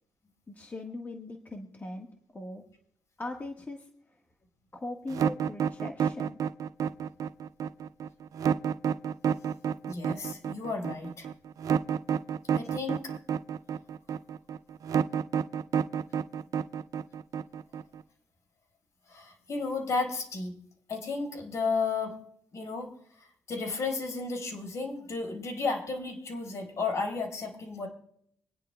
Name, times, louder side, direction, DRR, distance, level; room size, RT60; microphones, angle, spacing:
voice 1, 0.5-2.1 2.3-2.6 3.2-3.9 4.7-6.4, left 2 dB, 30° left, 1 dB, 1.4 m, -40 dB
sound 1, 5.1-18.0, right 8 dB, 65° right, 0.4 m, -29 dB
voice 2, 9.9-11.3 12.5-13.1 19.1-20.5 20.9-22.1 22.5-22.9 23.2-27.9, left 4 dB, 55° left, 1 dB, 4.5 m, -33 dB
26.0 x 10.0 x 2.2 m, 0.69 s
cardioid pair, 95°, 6 cm